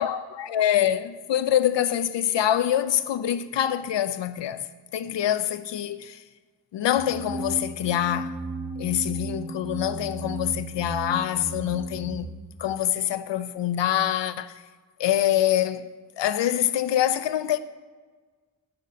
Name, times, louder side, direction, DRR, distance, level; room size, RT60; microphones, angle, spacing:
voice 1, 0.0-4.7 4.9-6.2 6.7-8.4 8.8-12.3 12.6-14.6 15.0-15.9 16.2-17.6, left 11 dB, 75° left, 0.5 m, -25 dB
sound 1, 7.0-12.3, right 3 dB, 15° right, 0.8 m, -35 dB
6.7 x 4.0 x 6.4 m
cardioid pair, 60°, 44 cm